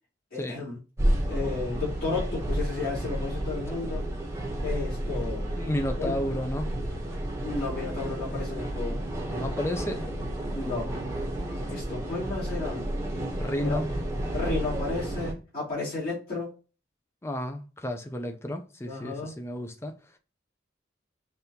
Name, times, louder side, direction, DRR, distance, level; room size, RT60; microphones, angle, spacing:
voice 1, 0.3-0.8 1.2-4.0 4.6-5.5 6.0-6.1 7.4-9.0 10.5-10.9 11.7-12.8 13.6-13.8 14.3-16.5 18.9-19.3, left 3 dB, 50° left, 2.8 m, -33 dB
sound 1, 1.0-15.3, right 1 dB, 15° right, 0.9 m, -31 dB
voice 2, 5.6-6.7 9.3-10.3 13.4-13.9 17.2-20.0, left 1 dB, 15° left, 0.5 m, -32 dB
5.3 x 3.4 x 2.9 m
head